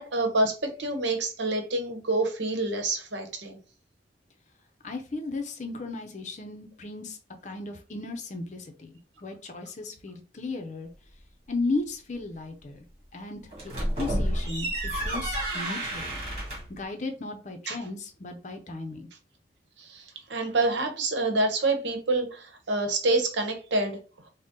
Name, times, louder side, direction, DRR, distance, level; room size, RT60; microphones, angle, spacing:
voice 1, 0.0-3.6 17.7-17.8 19.8-24.0, right 2 dB, 85° right, 0.9 m, -27 dB
voice 2, 4.8-7.2 7.4-10.9 11.5-12.8 13.1-16.2 16.7-19.1, left 3 dB, 40° left, 0.6 m, -35 dB
sound 1, 13.5-16.8, right 1 dB, 35° right, 1.7 m, -30 dB
3.9 x 2.1 x 3.7 m
head